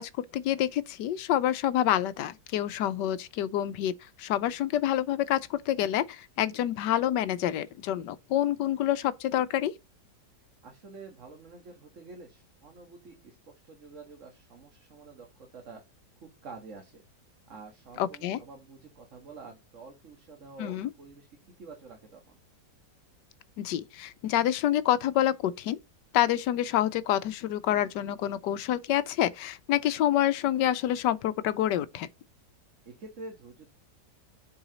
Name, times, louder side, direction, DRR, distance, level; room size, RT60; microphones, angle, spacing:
voice 1, 0.0-3.9 4.2-9.7 18.0-18.4 20.6-20.9 23.6-25.8 26.1-32.1, left 12 dB, 80° left, 1.2 m, -27 dB
voice 2, 10.6-15.8 16.2-17.0 17.5-21.3 21.6-22.4 32.8-33.7, right 3 dB, 45° right, 1.7 m, -48 dB
7.0 x 4.8 x 4.0 m
omnidirectional pair, 1.9 m